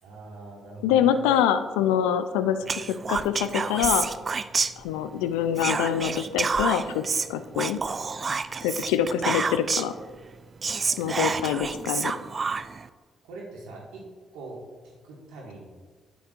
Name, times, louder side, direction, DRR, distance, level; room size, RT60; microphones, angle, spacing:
voice 1, 0.0-1.2 10.8-11.3 13.2-14.0 14.3-14.6 14.8-15.7, right 2 dB, 85° right, -3 dB, 1.8 m, -43 dB
voice 2, 0.8-2.8 3.1-4.1 4.8-7.0 7.3-7.8 8.6-9.9 11.0-12.1, left 9 dB, 90° left, 11 dB, 0.3 m, -25 dB
Whispering, 2.7-5.2 5.6-10.0 10.3-10.4 10.6-12.9, right 4 dB, 45° right, 0.3 m, -28 dB
9.2 x 7.1 x 2.5 m, 1.4 s
supercardioid pair, 55°, 0 cm